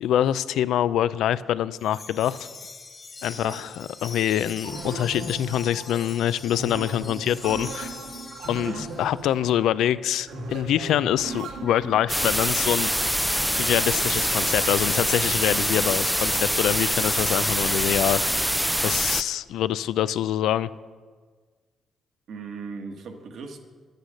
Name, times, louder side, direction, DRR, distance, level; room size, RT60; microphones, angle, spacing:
voice 1, 0.0-2.5 3.2-7.9 8.5-12.9 13.6-18.5 18.8-20.7, left 11 dB, 85° left, 17 dB, 0.3 m, -25 dB
Wind chime, 1.8-9.3, left 4 dB, 35° left, 0.9 m, -42 dB
sound 1, 4.6-12.1, right 3 dB, 90° right, 1.9 m, -37 dB
sound 2, 12.1-19.2, equal, ahead, 0.3 m, -24 dB
voice 2, 22.3-23.6, right 4 dB, 70° right, 5 dB, 1.3 m, -38 dB
9.7 x 9.1 x 6.5 m, 1.5 s
cardioid pair, 100°, 0 cm